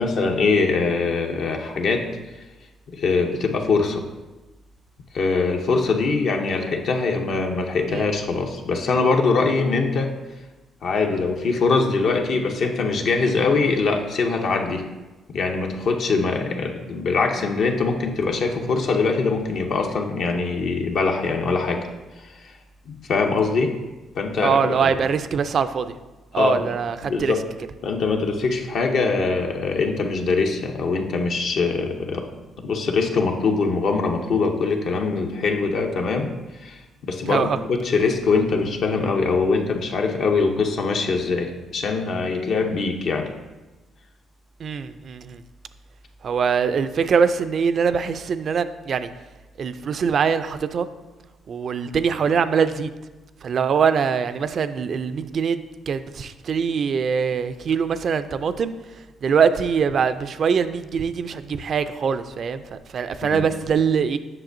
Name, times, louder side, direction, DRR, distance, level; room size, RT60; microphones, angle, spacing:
voice 1, 0.0-2.1 2.9-4.0 5.1-10.1 10.8-14.8 15.3-21.9 22.2-22.5 22.9-23.7 24.1-24.9 26.3-26.7 27.0-27.4 27.8-32.2 32.6-43.3 63.2-63.4, left 4 dB, 65° left, 2 dB, 0.6 m, -23 dB
voice 2, 24.4-25.9 26.3-27.3 37.3-37.6 44.6-45.4 46.2-49.1 49.6-50.9 51.5-52.9 53.4-55.6 55.9-58.7 59.2-64.2, right 6 dB, 55° right, 12 dB, 0.3 m, -23 dB
7.6 x 6.0 x 2.6 m, 1.1 s
cardioid pair, 90°, 0 cm